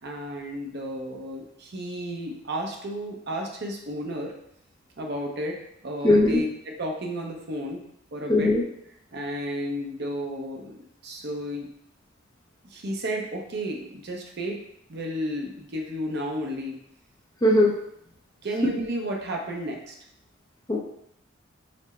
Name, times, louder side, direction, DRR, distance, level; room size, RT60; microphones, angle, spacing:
voice 1, 0.0-4.3 5.0-7.8 8.1-8.5 9.1-11.7 12.7-14.6 14.9-16.8 18.4-19.9, equal, 55° right, 1 dB, 0.6 m, -32 dB
voice 2, 6.0-6.4 8.3-8.6 17.4-17.7 20.7-20.8, left 1 dB, 20° left, -1 dB, 0.5 m, -18 dB
4.2 x 2.1 x 4.1 m, 0.74 s
head